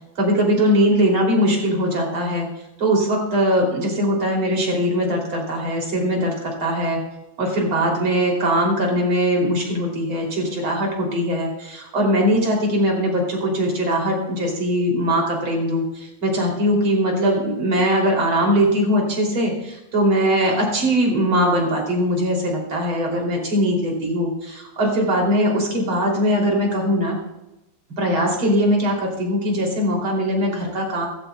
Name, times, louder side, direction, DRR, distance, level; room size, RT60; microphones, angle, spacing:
voice 1, 0.2-2.5 2.8-7.0 7.4-27.2 28.0-31.1, equal, 80° right, -1 dB, 4.0 m, -21 dB
16.5 x 14.5 x 2.3 m, 0.93 s
omnidirectional pair, 2.2 m